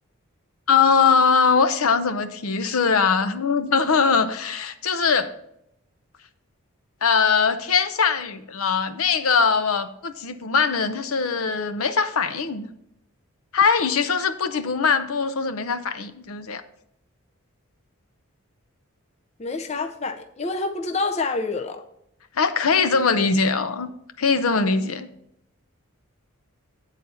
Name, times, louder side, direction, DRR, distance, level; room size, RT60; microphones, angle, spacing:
voice 1, 0.7-5.3 7.0-12.7 13.5-16.6 22.4-23.9 24.2-25.1, left 5 dB, 75° left, 0.6 m, -21 dB
voice 2, 19.4-21.8, left 3 dB, 30° left, 0.5 m, -27 dB
8.9 x 4.1 x 6.9 m
head